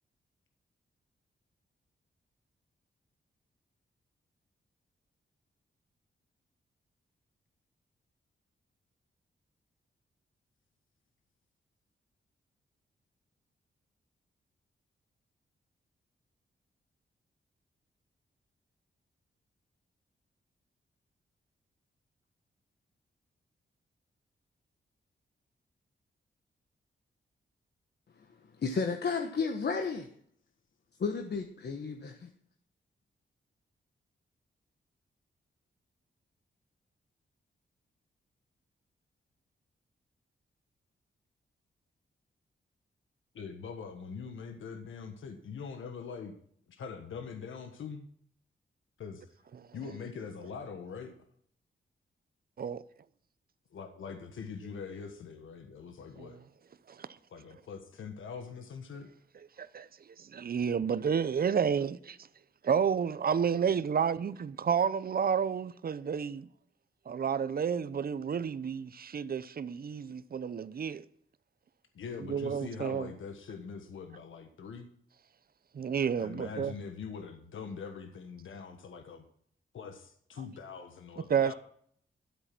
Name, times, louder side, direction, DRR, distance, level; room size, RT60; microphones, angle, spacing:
voice 1, 28.6-30.1 31.0-32.3, left 5 dB, 60° left, 1.2 m, -32 dB
voice 2, 43.3-46.3 46.7-48.1 49.0-49.4 49.7-51.1 53.7-56.4 57.3-59.1 71.9-74.9 76.2-79.2 79.7-81.5, left 5 dB, 90° left, 1.4 m, -43 dB
voice 3, 60.2-62.2 62.6-66.5 67.1-71.0 72.3-73.1 75.7-76.7 81.3-81.5, right 7 dB, 50° right, 0.7 m, -30 dB
12.5 x 8.1 x 6.1 m
wide cardioid pair, 95°, 20 cm